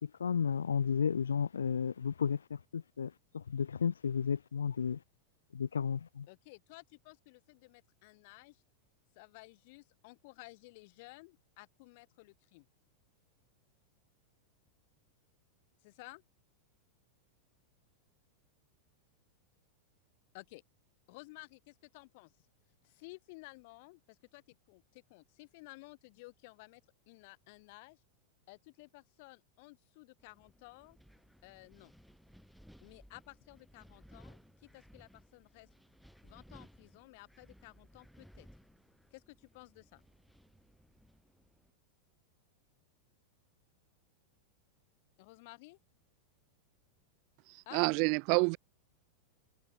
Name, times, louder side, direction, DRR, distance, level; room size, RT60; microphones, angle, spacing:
voice 1, 0.0-5.0 5.5-6.3, left 7 dB, 70° left, 1.9 m, -33 dB
voice 2, 6.3-8.6 9.2-12.7 15.8-16.2 20.3-20.6 21.1-22.3 22.8-24.4 24.7-26.8 27.1-28.0 28.5-31.0 31.4-31.9 32.8-35.7 36.2-38.5 39.1-40.0 45.2-45.8 47.7-48.0, left 26 dB, 50° left, 2.3 m, -54 dB
Wind, 30.2-41.7, equal, ahead, 4.2 m, -60 dB
voice 3, 47.7-48.6, right 35 dB, 45° right, 0.3 m, -27 dB
figure-of-eight pair, 90°, 0 cm